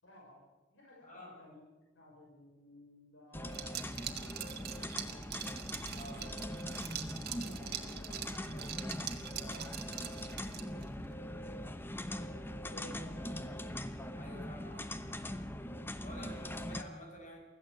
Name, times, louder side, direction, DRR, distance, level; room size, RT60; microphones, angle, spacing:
voice 1, 0.0-0.4 0.7-1.6 1.9-5.3 5.8-6.4 6.8-7.0 7.4-8.8 9.1-9.7 10.3-13.4, equal, 80° left, -2 dB, 5.9 m, -56 dB
voice 2, 1.0-1.3 5.9-6.2 14.2-15.4 16.0-17.4, equal, 45° left, 2 dB, 5.9 m, -50 dB
sound 1, 3.3-16.8, left 1 dB, 10° left, 1.0 m, -42 dB
Liquid, 3.5-10.9, right 10 dB, 55° right, 1.9 m, -43 dB
25.0 x 15.5 x 7.9 m, 1.2 s
head